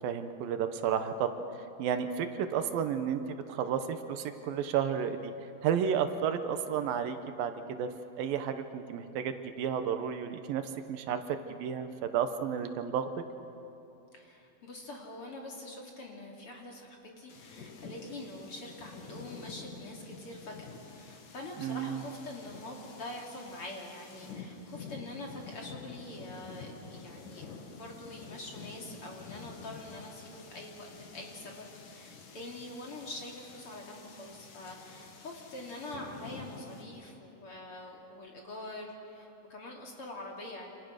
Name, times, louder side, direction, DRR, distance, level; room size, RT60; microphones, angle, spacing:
voice 1, 0.0-1.4 1.8-5.3 5.6-7.9 8.2-13.1 21.6-22.0, right 8 dB, 75° right, 8 dB, 2.7 m, -32 dB
voice 2, 14.1-20.6 20.9-40.7, left 2 dB, 40° left, 0 dB, 3.2 m, -45 dB
sound 1, 17.3-36.8, left 4 dB, 60° left, 3.5 m, -48 dB
28.0 x 27.0 x 6.5 m, 2.9 s
omnidirectional pair, 4.3 m